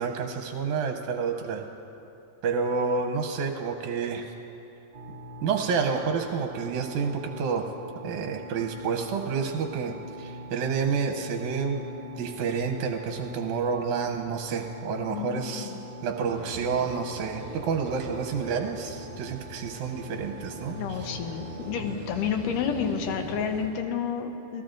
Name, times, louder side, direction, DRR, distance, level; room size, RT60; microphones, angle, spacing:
voice 1, 0.0-1.7 2.4-4.3 5.4-7.7 8.0-11.8 12.2-15.7 16.0-21.2, right 5 dB, 75° right, 3 dB, 2.1 m, -29 dB
sound 1, 4.9-22.0, left 1 dB, 45° right, 1.4 m, -42 dB
voice 2, 15.1-15.8 20.8-24.6, left 7 dB, 90° left, 5 dB, 2.6 m, -30 dB
sound 2, 16.2-23.7, equal, 60° left, 4.7 m, -42 dB
27.0 x 18.0 x 2.6 m, 2.9 s
omnidirectional pair, 3.7 m